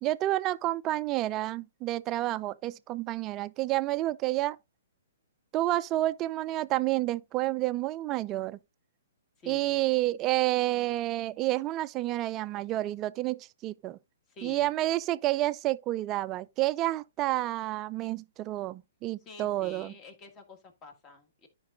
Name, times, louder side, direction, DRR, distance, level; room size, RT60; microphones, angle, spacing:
voice 1, 0.0-4.6 5.5-8.6 9.5-14.0 14.4-19.9, right 16 dB, 25° right, 0.4 m, -29 dB
voice 2, 9.4-9.9 14.3-14.7 19.2-21.5, left 2 dB, 25° left, 1.6 m, -48 dB
13.0 x 5.2 x 2.4 m
figure-of-eight pair, 120°, 0 cm